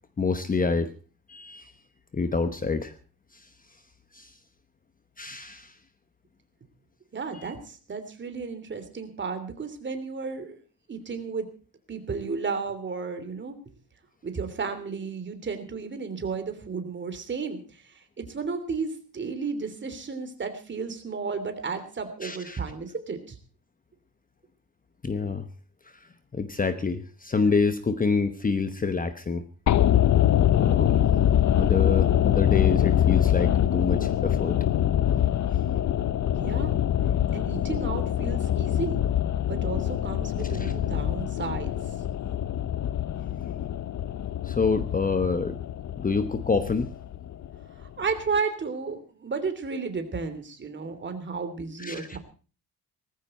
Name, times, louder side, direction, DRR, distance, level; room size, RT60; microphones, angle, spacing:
voice 1, 0.2-0.9 1.3-1.7 2.1-2.9 4.1-4.3 5.2-5.7 7.3-7.5 22.2-22.6 25.0-25.4 26.3-29.4 30.5-31.0 31.5-34.5 40.5-40.7 44.4-45.6 46.0-46.9 51.8-52.2, left 4 dB, 20° left, 10 dB, 1.0 m, -27 dB
voice 2, 7.1-10.6 10.9-11.5 11.9-13.5 14.2-23.4 36.3-36.7 37.3-39.0 39.5-41.7 47.8-52.2, right 5 dB, 30° right, 8 dB, 3.1 m, -33 dB
sound 1, 29.7-47.9 48.1-48.2, left 11 dB, 45° left, 0.8 m, -24 dB
19.0 x 15.0 x 4.3 m, 0.37 s
cardioid pair, 155°, 38 cm